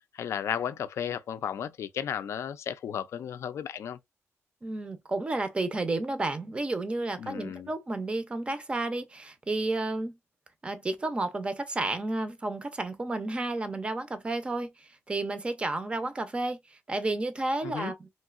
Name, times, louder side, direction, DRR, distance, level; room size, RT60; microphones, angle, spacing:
voice 1, 0.1-4.0 7.2-7.7 17.6-17.9, left 8 dB, 65° left, 0.4 m, -34 dB
voice 2, 4.6-10.1 10.6-18.1, right 2 dB, 20° right, 0.5 m, -31 dB
3.1 x 2.7 x 2.4 m
wide cardioid pair, 145°, 5 cm